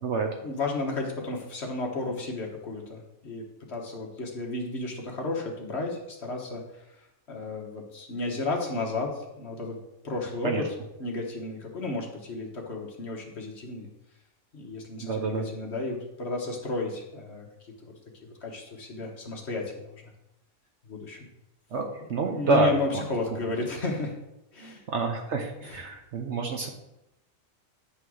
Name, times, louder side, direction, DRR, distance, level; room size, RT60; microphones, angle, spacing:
voice 1, 0.4-9.8 10.0-10.7 11.0-13.9 14.5-17.9 18.4-20.1 20.8-21.3 22.2-24.1 24.5-24.8 25.7-25.8, left 2 dB, 55° left, 1 dB, 1.6 m, -33 dB
voice 2, 15.0-15.5 21.7-21.8 22.1-23.0 24.9-26.7, right 3 dB, 60° right, 3 dB, 1.1 m, -27 dB
9.9 x 3.6 x 6.3 m, 0.90 s
omnidirectional pair, 1.4 m